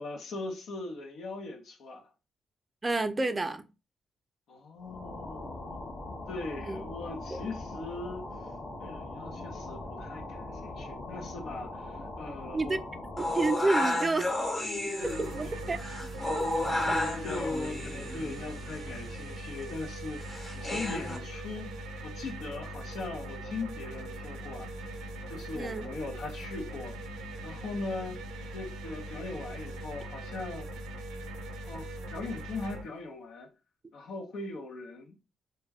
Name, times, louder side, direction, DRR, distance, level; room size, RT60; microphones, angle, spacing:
voice 1, 0.0-2.1 4.5-8.3 8.8-12.8 13.7-14.1 16.7-21.7 22.0-24.7 25.3-27.0 27.4-28.2 28.5-30.7 31.7-33.5 33.9-35.1, left 3 dB, 70° left, 0.7 m, -40 dB
voice 2, 2.8-3.6 6.7-6.8 7.3-7.4 12.5-12.8 13.2-14.3 15.2-15.8 16.3-16.4 25.5-25.9, right 3 dB, 25° right, 0.3 m, -29 dB
sound 1, 4.8-13.6, left 2 dB, 50° left, 1.0 m, -41 dB
sound 2, 13.2-21.2, left 1 dB, 20° left, 0.9 m, -33 dB
sound 3, 15.0-32.8, right 1 dB, 90° right, 0.4 m, -41 dB
2.2 x 2.2 x 3.4 m
cardioid pair, 90°, 0 cm